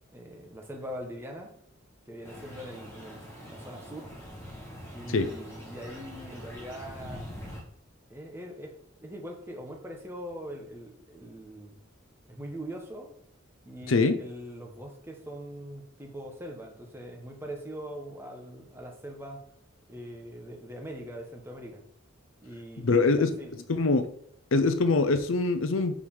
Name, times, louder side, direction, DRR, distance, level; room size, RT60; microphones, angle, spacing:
voice 1, 0.1-1.5 2.1-4.1 4.9-7.3 8.1-11.8 12.3-13.1 13.6-19.4 19.9-21.8 22.4-23.1 23.4-23.5, equal, 10° right, 1 dB, 1.3 m, -42 dB
sound 1, 2.2-7.6, equal, 15° left, 2.3 m, -44 dB
voice 2, 13.9-14.2 22.8-23.3 23.7-24.1 24.5-25.9, left 3 dB, 75° left, 10 dB, 0.6 m, -23 dB
4.9 x 4.8 x 5.5 m, 0.69 s
head